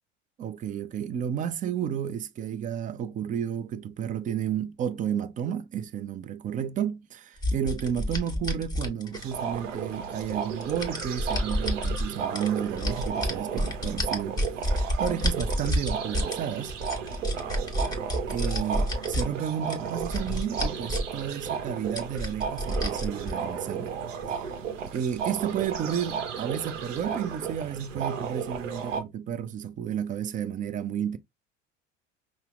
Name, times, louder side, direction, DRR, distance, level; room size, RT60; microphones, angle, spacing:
voice 1, 0.4-16.8 18.3-24.0 24.3-24.4 24.9-31.2, right 9 dB, 25° right, 0.3 m, -32 dB
sound 1, 7.4-9.5 10.2-12.1 12.4-16.4 16.7-19.2 19.7-21.2 21.4-21.5 22.0-23.3, equal, 10° left, 1.3 m, -29 dB
sound 2, 9.1-29.0, right 7 dB, 75° right, 0.8 m, -34 dB
5.4 x 2.0 x 2.4 m
figure-of-eight pair, 70°, 38 cm